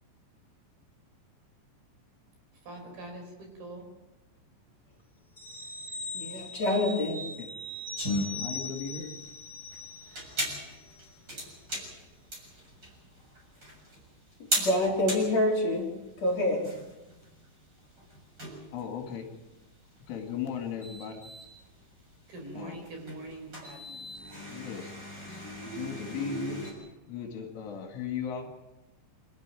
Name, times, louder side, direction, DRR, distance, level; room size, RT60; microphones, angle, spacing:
voice 1, 2.6-3.9 22.3-24.0, right 2 dB, 50° right, 3 dB, 6.7 m, -43 dB
sound 1, 5.4-10.5 10.8-10.9, left 2 dB, 15° left, 1.7 m, -40 dB
voice 2, 6.1-7.2 14.6-15.9 16.2-16.6, left 1 dB, 35° left, 1 dB, 4.3 m, -26 dB
sound 2, 8.0-26.7, equal, 20° right, 7.3 m, -38 dB
voice 3, 8.3-9.1 18.7-19.3 20.0-21.2 22.5-22.8 24.3-24.9 25.3-26.6 27.1-28.5, left 7 dB, 70° left, 3 dB, 4.8 m, -37 dB
27.0 x 14.0 x 9.2 m, 1.0 s
omnidirectional pair, 6.0 m